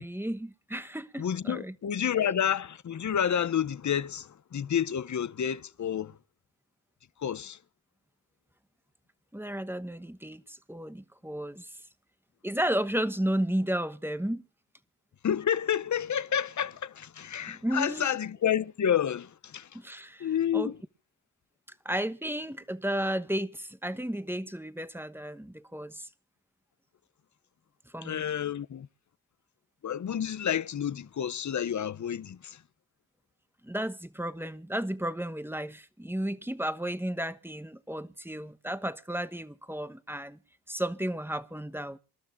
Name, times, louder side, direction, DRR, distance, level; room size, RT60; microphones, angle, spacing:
voice 1, 0.0-1.7 9.3-11.7 12.4-14.4 17.5-18.1 19.7-20.3 20.5-20.7 21.8-26.1 27.9-28.2 33.6-40.4 40.7-42.0, right 1 dB, 5° right, 1.1 m, -33 dB
voice 2, 1.2-6.1 7.2-7.6 15.2-19.7 20.2-20.8 28.0-28.9 29.8-32.6, left 9 dB, 40° left, 0.7 m, -29 dB
27.5 x 12.5 x 2.6 m
cardioid pair, 55°, 45 cm